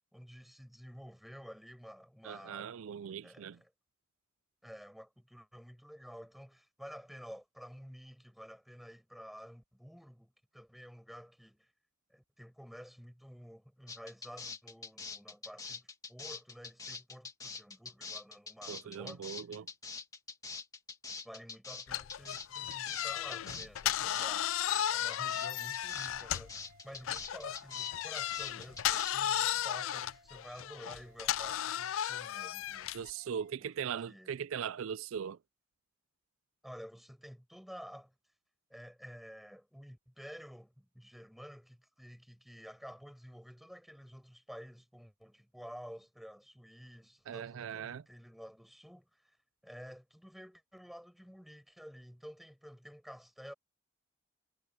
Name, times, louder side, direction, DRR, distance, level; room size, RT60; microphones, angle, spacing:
voice 1, 0.1-2.7 3.2-3.7 4.6-11.7 12.1-19.3 21.2-24.5 24.9-32.9 33.6-33.7 34.0-34.3 36.6-38.1 38.7-49.4 49.6-53.5, equal, ahead, 6.6 m, -51 dB
voice 2, 2.2-3.6 18.7-19.7 32.9-35.4 47.3-48.0, right 8 dB, 75° right, 0.4 m, -39 dB
sound 1, 13.9-29.6, left 4 dB, 15° left, 2.4 m, -44 dB
sound 2, 21.9-26.6 27.0-33.1, left 11 dB, 75° left, 0.4 m, -35 dB
sound 3, 24.5-33.6, right 1 dB, 40° right, 2.4 m, -63 dB
head